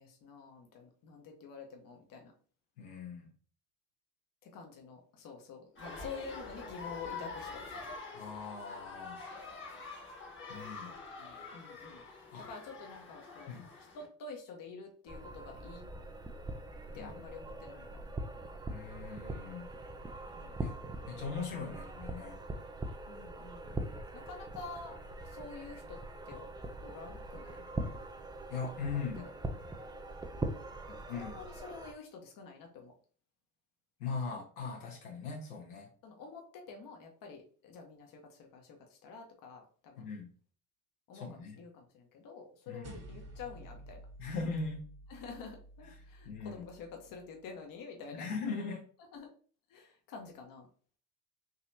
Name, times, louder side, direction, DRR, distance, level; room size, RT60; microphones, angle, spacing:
voice 1, 0.0-2.3 4.4-7.6 10.8-10.9 11.2-12.0 12.5-13.6 13.9-15.8 16.9-18.0 20.3-20.6 23.1-25.0 25.2-27.6 28.9-29.1 31.1-32.9 36.0-40.1 41.1-44.0 45.1-48.2 49.1-49.3 49.7-50.7, left 4 dB, 50° left, 2 dB, 1.1 m, -48 dB
voice 2, 2.8-3.3 8.1-9.2 10.5-10.9 12.3-12.5 13.5-13.7 16.9-17.2 18.7-19.7 20.6-20.8 21.0-22.4 28.5-29.2 31.1-31.4 34.0-35.9 40.0-40.3 41.1-41.6 42.7-43.0 44.2-44.8 46.2-46.6 48.1-48.8, left 4 dB, 85° left, -2 dB, 1.4 m, -40 dB
sound 1, 5.8-14.1, left 4 dB, 25° left, 1.2 m, -46 dB
sound 2, 15.1-31.9, right 2 dB, 10° right, 0.4 m, -42 dB
sound 3, 42.8-47.5, right 1 dB, 35° right, 1.2 m, -52 dB
4.0 x 2.9 x 2.7 m, 0.43 s
hypercardioid pair, 75°, 43 cm